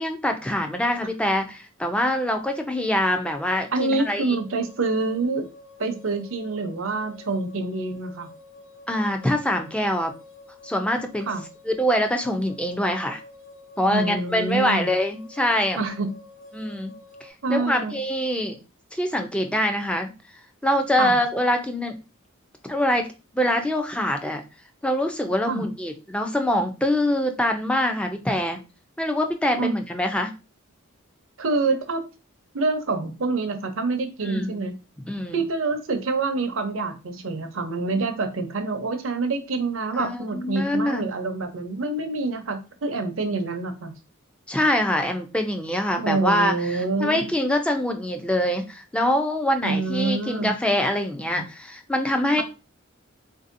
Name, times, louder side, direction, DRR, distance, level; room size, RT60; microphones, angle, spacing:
voice 1, 0.0-4.4 8.9-10.2 10.6-11.3 11.6-13.2 13.8-15.8 16.5-16.9 17.2-18.6 18.9-20.1 20.6-21.9 22.6-23.1 23.3-24.4 24.8-28.6 29.0-30.3 34.2-34.6 35.1-35.4 39.9-41.0 44.5-52.4, left 1 dB, 5° left, 5 dB, 0.4 m, -24 dB
sound 1, 3.3-17.3, left 2 dB, 70° left, 1.0 m, -48 dB
voice 2, 3.7-5.5 5.8-8.3 11.3-11.4 13.9-14.9 15.8-16.1 17.4-17.9 21.0-21.2 25.5-25.7 29.6-29.7 31.4-32.1 32.5-34.7 35.3-43.9 46.0-47.3 49.6-50.5, right 3 dB, 65° right, 6 dB, 0.7 m, -26 dB
4.0 x 2.7 x 2.5 m, 0.30 s
head